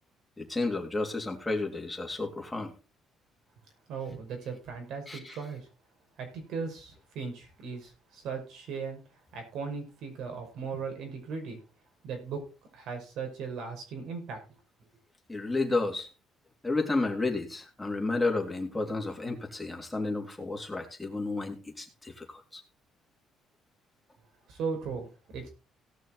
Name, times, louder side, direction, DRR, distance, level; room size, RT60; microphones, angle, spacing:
voice 1, 0.4-2.7 5.1-5.4 15.3-16.1 16.6-22.6, left 3 dB, 10° left, 2 dB, 3.2 m, -31 dB
voice 2, 3.9-5.7 6.2-9.0 9.3-11.6 12.0-12.4 12.7-14.4 24.5-25.5, right 5 dB, 75° right, 4 dB, 5.4 m, -37 dB
18.0 x 6.4 x 4.1 m, 0.33 s
cardioid pair, 110°, 0 cm